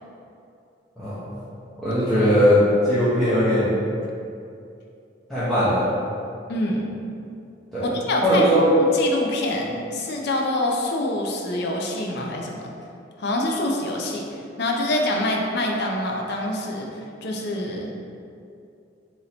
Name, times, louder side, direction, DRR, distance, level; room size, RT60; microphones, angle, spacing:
voice 1, 1.0-1.3 1.8-3.8 5.3-5.9 7.7-7.9 8.2-8.7, equal, ahead, -15 dB, 0.8 m, -19 dB
voice 2, 6.5-6.9 7.8-8.4 8.8-12.7 13.2-16.9 17.2-17.9, left 1 dB, 60° left, 0 dB, 0.5 m, -26 dB
3.1 x 2.7 x 4.1 m, 2.6 s
head